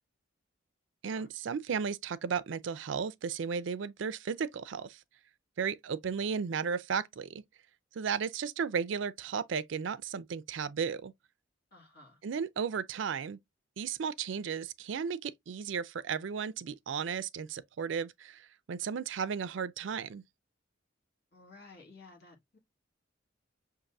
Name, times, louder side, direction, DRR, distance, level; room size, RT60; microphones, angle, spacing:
voice 1, 1.0-5.0 5.6-7.4 7.9-11.1 12.2-13.4 13.8-20.2, right 6 dB, 70° right, 0.4 m, -34 dB
voice 2, 11.7-12.2 21.3-22.6, left 3 dB, 55° left, 1.8 m, -54 dB
6.3 x 2.6 x 2.6 m
head